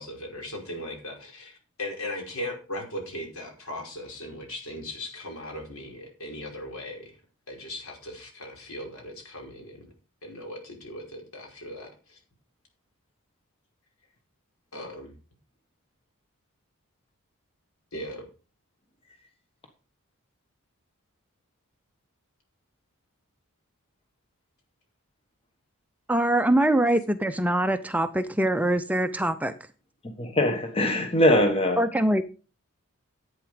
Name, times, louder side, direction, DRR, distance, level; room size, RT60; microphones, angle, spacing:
voice 1, 0.0-7.2 7.5-9.9 10.2-12.2 14.7-15.1 17.9-18.2, left 1 dB, 70° left, 5.2 m, -38 dB
voice 2, 26.1-29.5 31.8-32.2, right 1 dB, 5° right, 0.5 m, -23 dB
voice 3, 30.2-31.8, left 1 dB, 25° left, 1.4 m, -22 dB
11.5 x 8.7 x 4.9 m
head